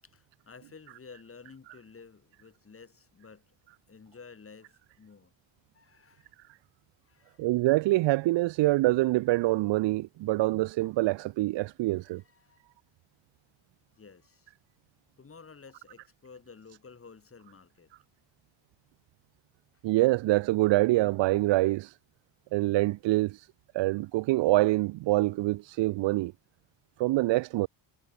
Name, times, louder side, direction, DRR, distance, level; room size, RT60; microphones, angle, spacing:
voice 1, 0.0-3.6 3.9-5.3 5.7-6.3 7.0-7.4 11.8-12.6 13.9-14.5 15.2-17.9 19.7-19.8, left 5 dB, 30° left, 7.7 m, -52 dB
voice 2, 7.4-12.2 19.8-22.0 22.5-23.5 23.7-26.3 27.0-27.7, right 19 dB, 80° right, 0.5 m, -25 dB
cardioid pair, 135°, 44 cm